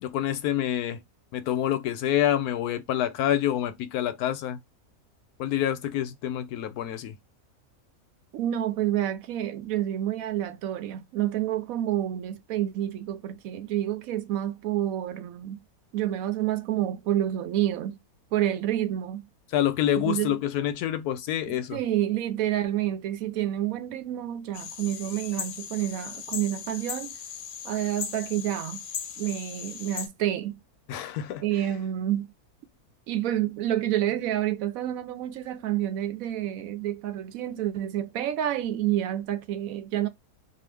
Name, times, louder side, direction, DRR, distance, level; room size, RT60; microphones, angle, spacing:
voice 1, 0.0-1.0 1.3-4.6 5.4-7.1 19.5-21.8 30.9-31.4, left 11 dB, 90° left, 1.1 m, -27 dB
voice 2, 8.3-15.6 15.9-18.0 18.3-19.3 20.0-20.4 21.5-27.2 27.6-28.8 29.2-30.6 31.4-32.3 33.1-40.1, right 12 dB, 75° right, 1.0 m, -29 dB
sound 1, 24.5-30.1, left 7 dB, 65° left, 1.1 m, -38 dB
2.8 x 2.4 x 3.2 m
omnidirectional pair, 1.6 m